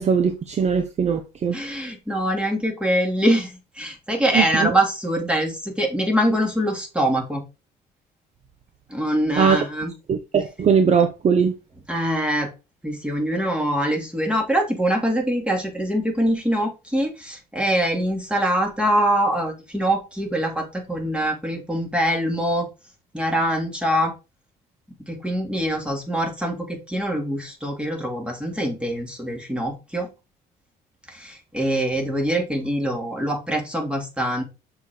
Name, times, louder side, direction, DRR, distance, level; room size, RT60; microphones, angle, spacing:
voice 1, 0.0-1.5 4.3-4.7 9.4-9.6 10.1-11.5, right 6 dB, 40° right, 1.0 m, -20 dB
voice 2, 1.5-7.4 8.9-9.9 11.9-12.5 12.8-22.7 23.1-24.1 25.1-30.1 31.1-34.4, equal, 5° right, 3.0 m, -24 dB
6.8 x 4.9 x 5.0 m
cardioid pair, 110°, 17 cm